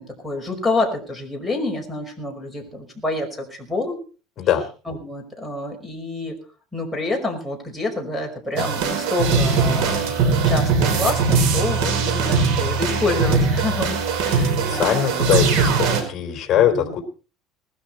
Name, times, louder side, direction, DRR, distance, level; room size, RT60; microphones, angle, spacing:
voice 1, 0.0-4.0 4.9-6.4 6.7-15.2 16.5-16.9, left 2 dB, ahead, -1 dB, 5.4 m, -28 dB
sound 1, 8.6-16.0, right 4 dB, 70° right, 5.1 m, -20 dB
voice 2, 14.7-17.0, left 10 dB, 35° left, 5 dB, 4.0 m, -21 dB
20.0 x 13.0 x 4.5 m, 0.37 s
cardioid pair, 145°, 0 cm